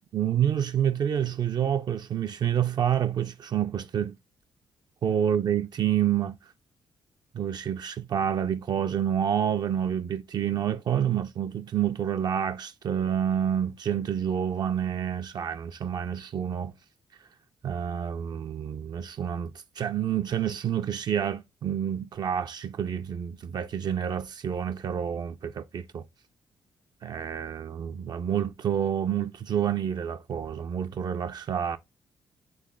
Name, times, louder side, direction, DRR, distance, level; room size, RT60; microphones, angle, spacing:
voice 1, 0.1-4.2 5.0-6.4 7.3-16.7 17.6-19.5 19.8-26.1 27.0-31.8, right 9 dB, 55° right, 0.4 m, -28 dB
3.3 x 3.1 x 3.7 m
supercardioid pair, 55°, 9 cm